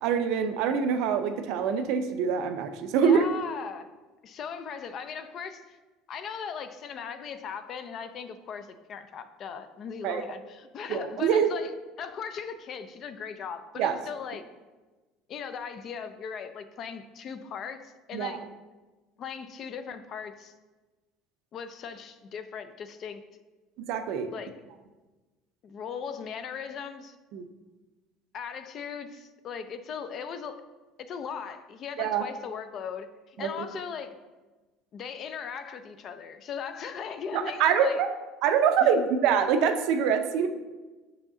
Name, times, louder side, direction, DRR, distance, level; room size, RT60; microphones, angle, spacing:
voice 1, 0.0-3.2 10.0-10.2 10.9-11.5 13.8-14.0 18.1-18.4 23.8-24.3 27.3-27.4 32.0-32.2 33.4-33.7 37.3-38.1 38.4-40.5, right 7 dB, 60° right, 8 dB, 0.5 m, -25 dB
voice 2, 3.0-3.9 4.2-5.8 6.1-11.7 12.0-14.4 15.3-18.4 19.2-20.5 21.5-23.2 24.3-24.5 25.6-27.1 28.3-30.6 31.0-34.1 34.9-38.0 38.8-39.1, left 6 dB, 35° left, 10 dB, 0.4 m, -38 dB
5.7 x 4.9 x 3.7 m, 1.2 s
cardioid pair, 165°, 0 cm